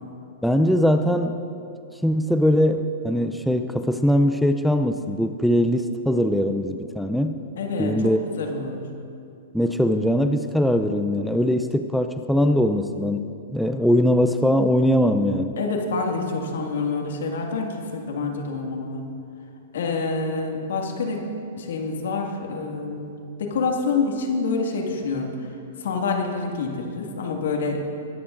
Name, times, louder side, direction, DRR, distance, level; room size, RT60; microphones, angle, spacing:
voice 1, 0.4-1.4 2.0-7.4 7.8-8.2 9.5-15.5, equal, ahead, 7 dB, 0.4 m, -21 dB
voice 2, 7.6-7.9 8.4-8.8 15.6-19.1 19.7-21.3 21.6-25.5 25.8-27.8, left 4 dB, 75° left, 1 dB, 1.9 m, -27 dB
20.5 x 10.0 x 2.5 m, 2.5 s
hypercardioid pair, 125°, 0 cm